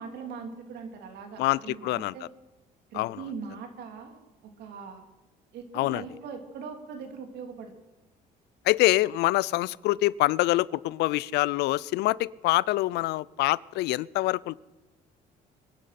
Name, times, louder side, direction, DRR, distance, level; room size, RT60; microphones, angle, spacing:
voice 1, 0.0-2.3 2.9-5.0 5.5-7.7, right 5 dB, 75° right, 5 dB, 3.0 m, -41 dB
voice 2, 1.4-2.1 2.9-3.2 5.7-6.0 8.6-14.6, left 18 dB, 80° left, 22 dB, 0.4 m, -25 dB
24.0 x 10.0 x 5.9 m, 1.1 s
cardioid pair, 110°, 17 cm